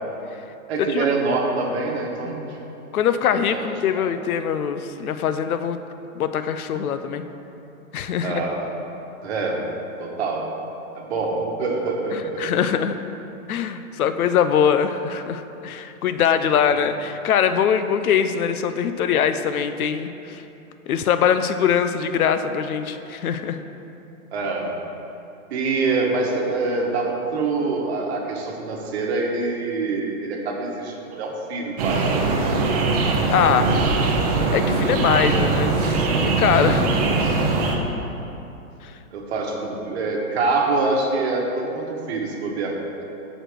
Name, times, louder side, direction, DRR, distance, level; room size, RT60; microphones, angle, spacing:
voice 1, 0.7-2.6 3.5-3.6 3.9-4.1 8.2-8.7 9.2-9.7 10.0-10.5 10.9-12.6 24.3-24.8 25.5-32.3 33.5-34.1 36.7-37.1 39.1-42.8, right 3 dB, 50° right, 0 dB, 1.2 m, -25 dB
voice 2, 2.9-5.8 6.1-7.2 7.9-8.4 12.4-12.9 13.5-20.4 20.9-23.6 33.3-33.7 34.5-36.9 38.8-38.9, left 8 dB, 85° left, 10 dB, 0.6 m, -22 dB
sound 1, 31.8-37.8, right 3 dB, 30° right, 0.6 m, -21 dB
6.2 x 5.1 x 6.1 m, 2.8 s
hypercardioid pair, 160°, 42 cm